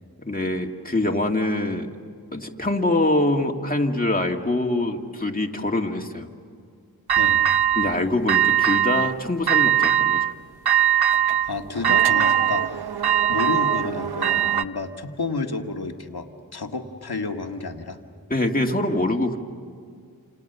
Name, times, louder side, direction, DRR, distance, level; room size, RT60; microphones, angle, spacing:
voice 1, 0.2-1.9 2.3-6.3 7.8-10.2 18.3-19.4, left 2 dB, 25° left, 2 dB, 2.3 m, -24 dB
sound 1, 7.1-8.0 8.3-9.1 9.5-10.3 10.7-14.6, right 10 dB, 85° right, 0.7 m, -20 dB
voice 2, 11.4-12.9 13.3-18.0, left 3 dB, 85° left, 3 dB, 1.9 m, -30 dB
29.5 x 28.0 x 6.9 m, 2.2 s
wide cardioid pair, 55°, 37 cm